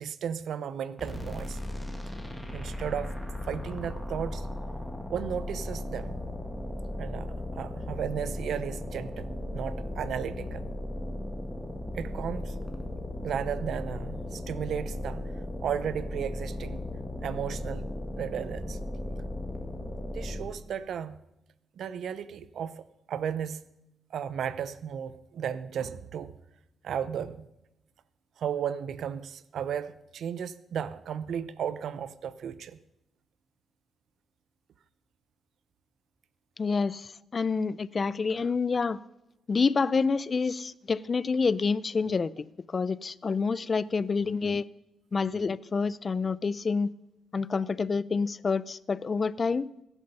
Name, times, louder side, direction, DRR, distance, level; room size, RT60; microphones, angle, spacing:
voice 1, 0.0-1.6 2.5-3.1 3.4-4.5 5.1-6.1 7.0-10.6 11.9-12.6 13.2-15.3 15.6-16.8 17.2-17.8 18.2-18.8 20.1-21.2 21.8-23.7 24.1-26.3 26.8-27.5 28.4-32.8, right 8 dB, 65° right, 0.6 m, -34 dB
sound 1, 1.0-20.6, left 1 dB, ahead, 1.8 m, -36 dB
voice 2, 36.6-39.0 39.5-44.6 45.1-46.9 47.3-49.7, left 4 dB, 30° left, 0.4 m, -28 dB
16.0 x 10.5 x 5.4 m
cardioid pair, 135°, 0 cm